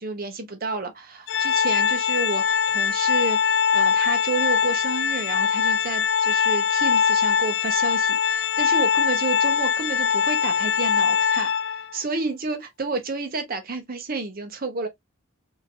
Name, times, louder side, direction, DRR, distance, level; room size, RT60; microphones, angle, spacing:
voice 1, 0.0-3.4 3.7-11.5 11.9-14.9, right 3 dB, 45° right, 1.0 m, -30 dB
Organ, 1.3-12.0, left 7 dB, 60° left, 0.3 m, -22 dB
4.0 x 2.9 x 2.7 m
head